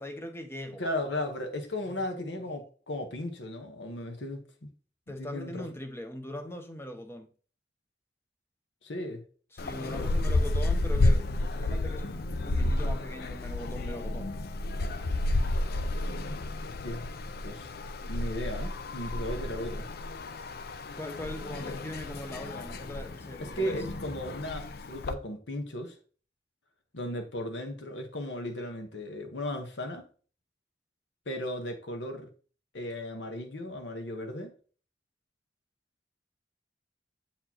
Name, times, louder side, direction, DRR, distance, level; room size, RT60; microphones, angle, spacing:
voice 1, 0.0-0.8 2.0-2.2 5.1-7.3 9.5-14.3 21.0-23.8, left 1 dB, 15° left, 0.8 m, -40 dB
voice 2, 0.8-4.7 5.1-5.7 8.8-9.2 10.0-10.4 16.7-17.1 17.4-17.7 18.1-19.9 23.4-26.0 26.9-30.0 31.3-32.3 32.7-34.5, left 1 dB, 75° left, 1.2 m, -36 dB
sound 1, 9.6-25.1, left 2 dB, 55° left, 0.5 m, -31 dB
7.7 x 4.4 x 2.9 m
head